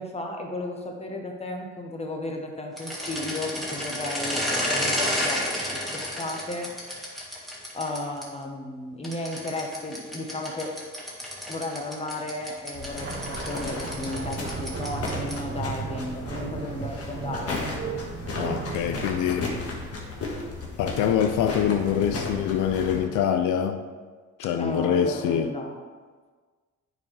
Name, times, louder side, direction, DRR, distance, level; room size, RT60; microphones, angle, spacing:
voice 1, 0.0-7.5 7.7-10.7 11.5-17.6 24.5-25.7, left 2 dB, 20° left, 1.2 m, -34 dB
sound 1, 2.7-8.2 9.0-15.5, left 1 dB, ahead, 1.8 m, -31 dB
sound 2, 12.7-23.0, left 3 dB, 50° left, 1.6 m, -35 dB
sound 3, 13.0-20.4, right 5 dB, 40° right, 0.8 m, -35 dB
voice 2, 18.4-19.5 20.8-23.8 24.4-25.5, left 8 dB, 90° left, 0.5 m, -24 dB
9.4 x 4.7 x 3.3 m
cardioid pair, 90°, 30 cm